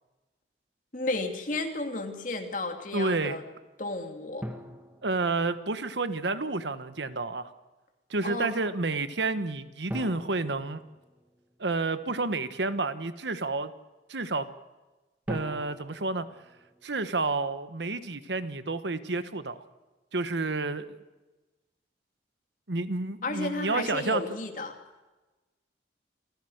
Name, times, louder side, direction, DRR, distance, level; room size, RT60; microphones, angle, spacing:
voice 1, 0.9-3.4 3.8-4.5 8.2-8.5 23.2-24.7, left 2 dB, 45° left, 4 dB, 2.8 m, -32 dB
voice 2, 2.9-3.4 5.0-7.5 8.1-10.8 11.6-13.7 14.1-14.5 15.3-16.3 16.8-19.6 20.1-20.9 22.7-24.2, right 3 dB, 90° right, 12 dB, 1.3 m, -30 dB
sound 1, 4.4-6.0 9.9-11.8 15.3-17.5, equal, 10° right, 1.7 m, -42 dB
28.0 x 15.5 x 6.5 m, 1.1 s
head